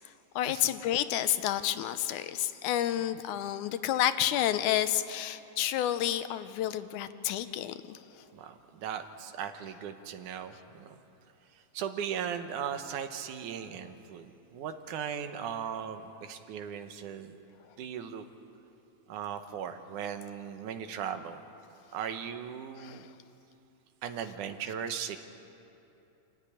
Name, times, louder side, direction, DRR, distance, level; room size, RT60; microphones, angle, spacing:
voice 1, 0.4-8.3 22.8-23.1, left 12 dB, 85° left, 12 dB, 2.2 m, -30 dB
voice 2, 8.3-11.0 11.7-17.4 17.8-18.2 19.1-21.4 21.9-23.1 24.0-25.2, right 8 dB, 85° right, 8 dB, 2.6 m, -38 dB
26.5 x 13.5 x 10.0 m, 2.9 s
omnidirectional pair, 3.5 m